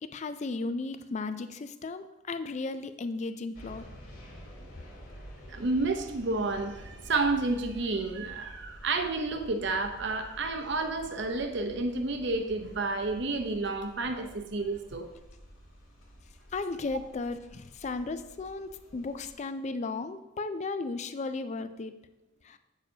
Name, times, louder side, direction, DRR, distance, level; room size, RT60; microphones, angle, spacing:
voice 1, 0.0-3.9 16.5-21.9 22.4-22.6, left 3 dB, 35° left, 11 dB, 0.3 m, -35 dB
sound 1, 3.5-19.4, equal, 80° left, 2.2 m, -50 dB
voice 2, 5.5-15.1, right 3 dB, 55° right, 5 dB, 0.7 m, -30 dB
8.2 x 6.9 x 2.8 m, 0.97 s
head